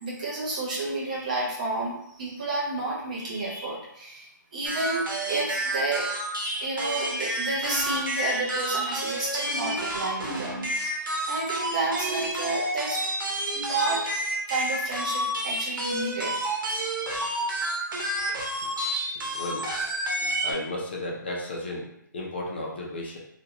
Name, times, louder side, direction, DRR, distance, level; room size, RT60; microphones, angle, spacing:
voice 1, 0.0-6.1 6.4-10.9 11.3-13.0 13.5-14.1 14.5-16.4 17.2-17.5, right 2 dB, 25° right, -5 dB, 0.6 m, -31 dB
sound 1, 4.7-20.5, right 1 dB, 85° right, 0.9 m, -30 dB
voice 2, 19.3-23.2, left 1 dB, 30° left, -2 dB, 0.4 m, -35 dB
2.5 x 2.2 x 2.8 m, 0.74 s
hypercardioid pair, 175°, 11 cm